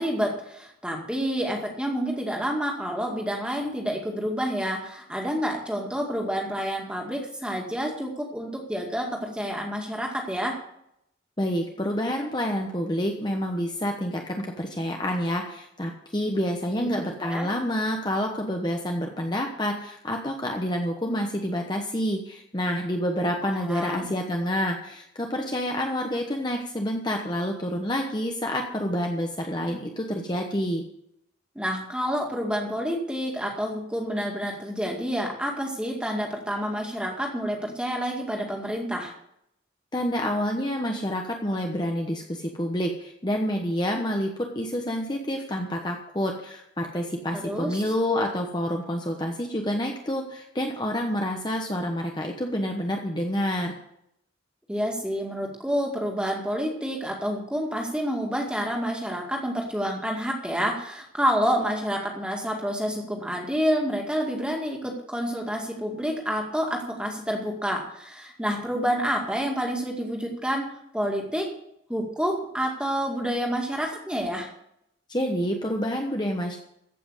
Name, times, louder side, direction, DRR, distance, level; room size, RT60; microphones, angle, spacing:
voice 1, 0.0-10.6 16.8-16.9 17.2-17.5 23.4-24.1 31.6-39.1 47.3-47.8 54.7-71.6 71.9-74.5, equal, 5° right, 0 dB, 2.2 m, -28 dB
voice 2, 11.4-30.8 39.9-53.7 75.1-76.6, equal, 25° left, 2 dB, 1.0 m, -28 dB
15.0 x 6.0 x 8.2 m, 0.76 s
head